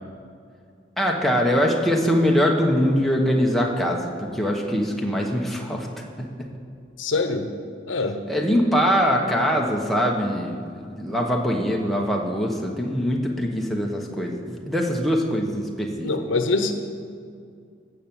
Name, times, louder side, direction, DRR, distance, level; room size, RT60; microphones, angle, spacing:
voice 1, 1.0-5.9 6.2-6.5 8.3-16.1, equal, ahead, -1 dB, 1.1 m, -23 dB
voice 2, 7.0-7.5 7.9-8.2 16.0-16.7, left 3 dB, 80° left, 7 dB, 0.9 m, -24 dB
14.5 x 6.0 x 7.2 m, 2.3 s
head